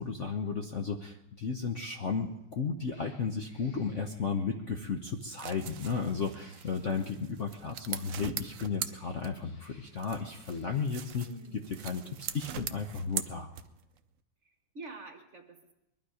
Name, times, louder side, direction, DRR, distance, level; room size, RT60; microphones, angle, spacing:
voice 1, 0.0-11.3 11.8-13.5, left 5 dB, 50° left, 4 dB, 0.9 m, -34 dB
Cat, 2.1-2.4 2.8-4.9 6.0-7.1 8.4-11.0, left 1 dB, 70° left, 4.2 m, -63 dB
sound 1, 5.1-9.6 10.0-14.0, right 9 dB, 65° right, 0.7 m, -42 dB
voice 2, 11.3-11.9 14.4-15.7, right 3 dB, 40° right, 5 dB, 1.3 m, -48 dB
21.5 x 12.0 x 4.9 m, 0.89 s
omnidirectional pair, 2.1 m